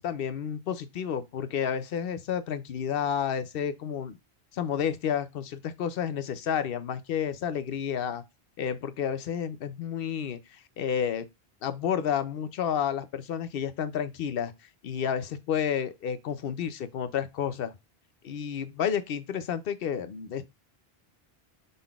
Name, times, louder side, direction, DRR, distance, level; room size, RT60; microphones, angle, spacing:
voice 1, 0.0-4.2 4.5-8.2 8.6-11.3 11.6-14.5 14.8-17.7 18.2-20.4, left 8 dB, 65° left, 0.8 m, -30 dB
5.2 x 3.8 x 2.3 m
omnidirectional pair, 1.1 m